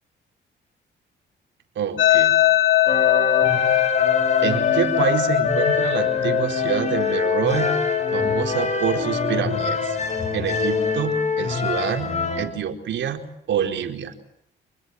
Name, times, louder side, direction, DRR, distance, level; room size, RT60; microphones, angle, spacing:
voice 1, 1.7-2.3 4.4-7.7 8.1-10.0 10.3-13.2 13.5-14.1, right 8 dB, 70° right, 5 dB, 4.6 m, -26 dB
sound 1, 2.0-11.0, left 15 dB, 75° left, 2.9 m, -23 dB
sound 2, 2.9-12.5, left 4 dB, 35° left, 6.3 m, -25 dB
28.5 x 21.5 x 9.8 m, 0.72 s
cardioid pair, 90°, 20 cm